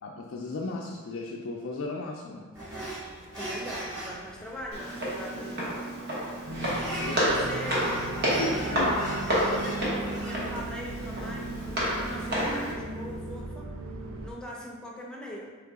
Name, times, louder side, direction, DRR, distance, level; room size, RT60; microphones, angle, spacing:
voice 1, 0.0-2.5 7.0-7.2 8.4-8.9, left 2 dB, 65° left, -1 dB, 0.4 m, -35 dB
sound 1, 2.5-13.4, right 1 dB, 15° right, 1.5 m, -41 dB
voice 2, 3.2-13.7 14.2-15.5, equal, 5° left, -3 dB, 0.5 m, -42 dB
Walk footsteps, 4.7-12.7, equal, 45° right, 1.1 m, -30 dB
sound 2, 6.5-14.3, right 2 dB, 65° right, 0.5 m, -38 dB
3.8 x 3.6 x 3.5 m, 1.4 s
head